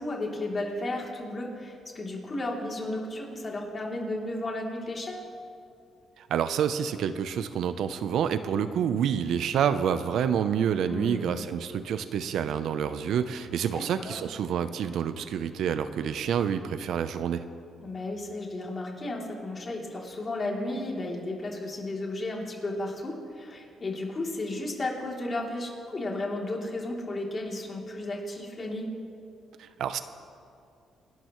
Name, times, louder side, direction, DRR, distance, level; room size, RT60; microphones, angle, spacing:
voice 1, 0.0-5.3 10.9-11.4 13.7-14.2 17.8-28.9, left 2 dB, 35° left, -1 dB, 3.0 m, -34 dB
voice 2, 6.2-17.4 29.6-30.0, right 8 dB, 75° right, 11 dB, 0.6 m, -28 dB
27.5 x 12.0 x 3.1 m, 2.5 s
cardioid pair, 90°, 0 cm